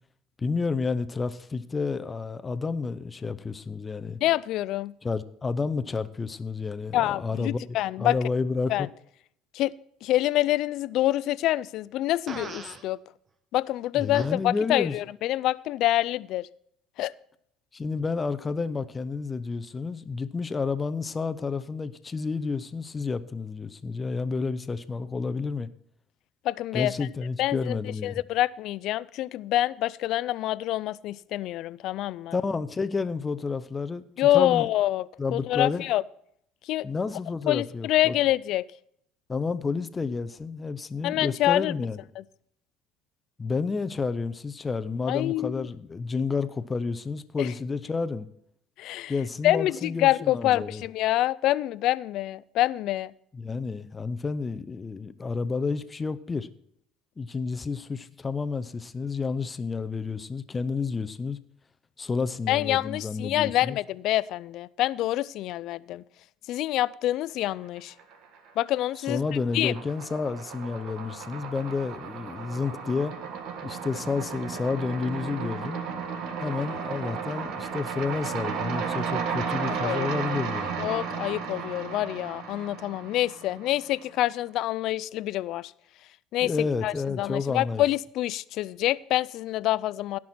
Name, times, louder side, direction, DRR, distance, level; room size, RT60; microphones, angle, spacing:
voice 1, 0.4-4.2 5.0-7.6 8.0-8.9 13.9-15.0 17.7-25.7 26.7-28.2 32.3-34.7 35.2-35.8 36.8-38.2 39.3-42.0 43.4-48.3 49.1-50.8 53.3-56.5 57.2-61.4 62.0-63.8 69.1-73.2 73.6-75.8 76.4-80.9 86.4-87.8, left 4 dB, 25° left, 0.7 m, -30 dB
voice 2, 4.2-4.9 6.9-8.2 8.7-8.9 9.5-13.0 13.5-16.5 17.0-17.1 26.4-26.9 27.4-27.8 28.0-32.3 34.2-35.1 35.3-36.0 36.7-36.9 37.5-38.7 41.0-41.7 42.2-42.3 45.1-45.7 47.4-47.5 48.8-49.1 49.4-53.1 62.5-66.0 66.5-67.9 68.6-69.2 69.5-69.8 79.8-80.1 80.8-85.7 86.3-90.2, left 14 dB, 65° left, 0.4 m, -26 dB
Fart, 12.3-12.8 14.1-14.3, right 4 dB, 35° right, 1.1 m, -38 dB
sound 1, 67.8-68.5 68.8-84.0, right 6 dB, 70° right, 1.5 m, -34 dB
17.0 x 6.1 x 4.3 m
supercardioid pair, 100°, 0 cm